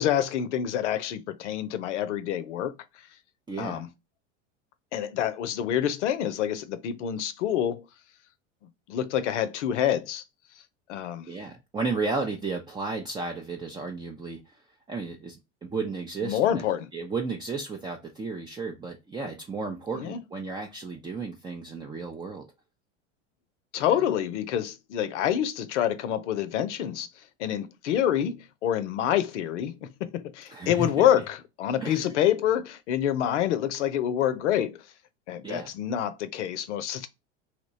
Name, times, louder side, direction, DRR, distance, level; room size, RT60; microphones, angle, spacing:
voice 1, 0.0-2.7 3.6-3.9 4.9-7.8 8.9-10.2 10.9-11.3 16.2-16.9 20.0-20.2 23.7-27.1 27.4-34.8 35.3-37.1, left 10 dB, 75° left, 0.6 m, -27 dB
voice 2, 3.5-3.9 11.3-14.4 14.9-16.6 16.9-22.5 23.9-24.0 30.5-31.1 31.8-32.1 35.4-35.7, right 4 dB, 15° right, 0.4 m, -33 dB
2.9 x 2.2 x 3.9 m
hypercardioid pair, 95°, 35 cm